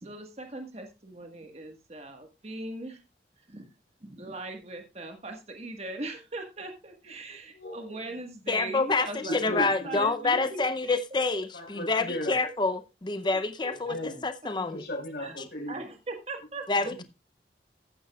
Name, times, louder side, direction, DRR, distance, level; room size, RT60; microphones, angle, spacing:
voice 1, 0.0-3.0 3.5-3.7 4.0-11.2 12.4-12.6 13.2-14.0 15.2-15.3 15.7-16.7, right 2 dB, 35° right, 5 dB, 1.4 m, -40 dB
voice 2, 7.5-8.2 9.2-10.0 10.3-10.5 11.5-12.4 13.9-14.2 14.5-15.8, equal, 60° left, 1 dB, 4.7 m, -37 dB
voice 3, 8.5-14.8 16.7-17.0, left 3 dB, 25° left, 11 dB, 0.5 m, -27 dB
15.0 x 9.1 x 2.3 m, 0.26 s
head